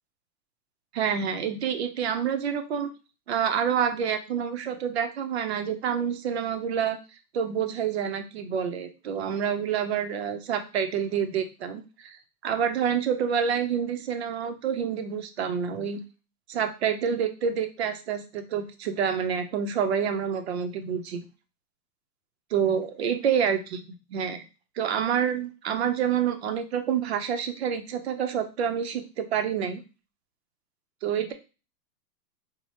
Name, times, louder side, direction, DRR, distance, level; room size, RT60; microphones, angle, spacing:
voice 1, 0.9-2.9 3.3-7.0 7.3-12.2 12.4-16.0 16.5-21.2 22.5-23.8 24.1-24.4 24.8-29.8 31.0-31.3, right 8 dB, 45° right, 7 dB, 0.5 m, -28 dB
3.1 x 2.0 x 4.0 m, 0.31 s
hypercardioid pair, 160°, 49 cm